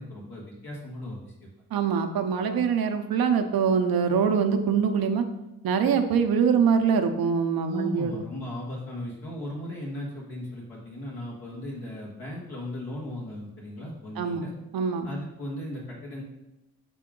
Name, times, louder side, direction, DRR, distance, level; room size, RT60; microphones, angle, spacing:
voice 1, 0.0-1.5 7.6-14.5 15.0-16.2, left 1 dB, 80° left, -5 dB, 1.6 m, -37 dB
voice 2, 1.7-5.3 5.6-8.2 14.2-14.5 14.7-15.1, right 6 dB, 75° right, 6 dB, 0.7 m, -24 dB
6.9 x 3.7 x 3.7 m, 0.93 s
supercardioid pair, 50°, 36 cm